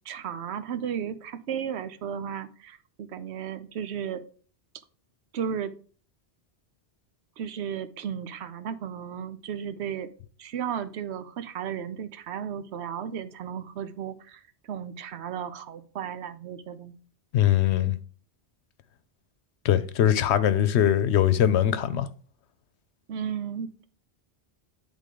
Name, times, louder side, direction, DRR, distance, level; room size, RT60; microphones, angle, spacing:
voice 1, 0.1-4.2 5.3-5.7 7.4-10.1 10.4-14.4 14.7-16.9 23.1-23.9, right 8 dB, 85° right, 0.9 m, -34 dB
voice 2, 17.3-18.0 19.6-22.1, left 10 dB, 85° left, 0.9 m, -21 dB
9.8 x 3.7 x 3.7 m
omnidirectional pair, 1.1 m